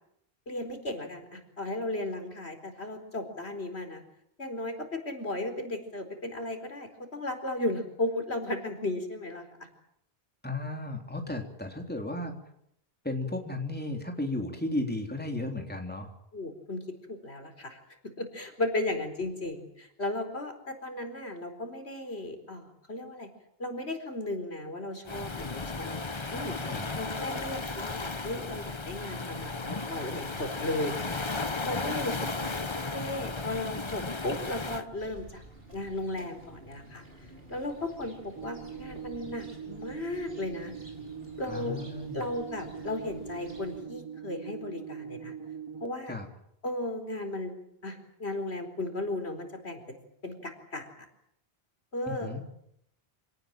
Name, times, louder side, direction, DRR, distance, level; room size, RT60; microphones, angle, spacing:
voice 1, 0.5-4.0 4.4-4.8 5.0-9.4 16.3-16.8 17.1-23.3 23.6-26.0 26.3-26.6 26.9-32.5 32.9-35.4 35.7-37.0 37.5-40.7 41.4-41.8 42.1-45.3 45.8-46.2 46.6-47.5 47.8-50.0 50.2-50.8 51.9-52.6, left 2 dB, 85° left, 5 dB, 4.6 m, -35 dB
voice 2, 10.4-12.4 13.0-16.1 26.7-26.9 41.5-42.3 46.1-46.3 52.2-52.4, left 2 dB, 10° left, 2 dB, 3.5 m, -34 dB
Waves surf, 25.1-34.8, left 3 dB, 30° left, 1.0 m, -35 dB
sound 1, 30.4-43.8, right 1 dB, 65° right, 5.8 m, -52 dB
sound 2, 38.4-45.9, right 7 dB, 25° right, 1.3 m, -42 dB
27.0 x 18.5 x 9.0 m, 0.74 s
omnidirectional pair, 1.1 m